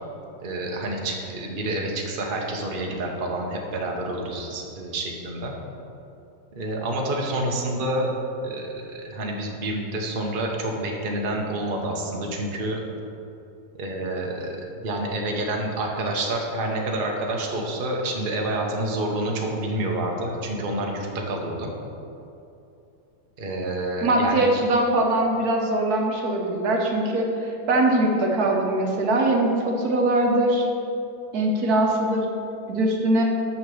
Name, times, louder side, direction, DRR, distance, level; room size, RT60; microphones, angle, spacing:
voice 1, 0.4-5.5 6.5-8.1 8.4-12.8 13.8-14.6 14.8-21.7 23.4-24.5, right 1 dB, 40° right, 0 dB, 1.1 m, -28 dB
voice 2, 24.0-30.7 31.3-32.3 32.7-33.2, right 1 dB, 80° right, 1 dB, 1.5 m, -22 dB
6.5 x 6.0 x 7.1 m, 2.7 s
omnidirectional pair, 1.6 m